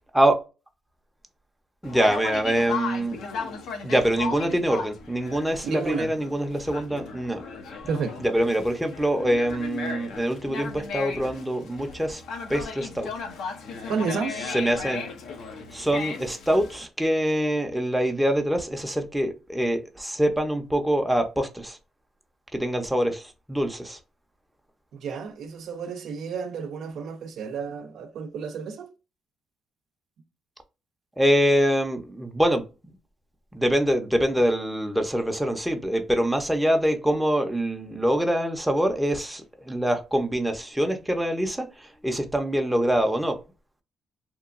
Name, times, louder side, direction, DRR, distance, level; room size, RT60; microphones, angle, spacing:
Conversation, 1.8-16.9, left 5 dB, 80° left, 0.6 m, -36 dB
voice 1, 1.8-3.2 3.8-7.4 8.2-12.2 12.5-13.1 14.5-15.0 15.7-21.8 22.5-24.0 31.2-32.6 33.5-43.4, equal, 5° right, 0.6 m, -24 dB
voice 2, 5.6-6.2 7.9-8.2 13.9-14.3 24.9-28.9, right 5 dB, 75° right, 0.4 m, -31 dB
2.9 x 2.2 x 2.4 m
cardioid pair, 90°, 0 cm